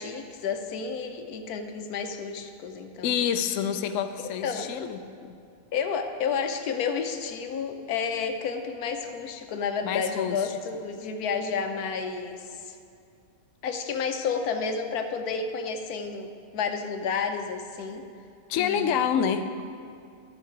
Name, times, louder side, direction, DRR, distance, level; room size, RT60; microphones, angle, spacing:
voice 1, 0.0-3.1 4.2-4.7 5.7-12.8 13.6-18.1 18.5-19.1, left 5 dB, 85° left, 6 dB, 1.2 m, -31 dB
voice 2, 3.0-5.4 9.8-10.4 18.5-19.5, left 8 dB, 70° left, 7 dB, 0.9 m, -27 dB
13.0 x 6.6 x 4.8 m, 2.5 s
omnidirectional pair, 1.6 m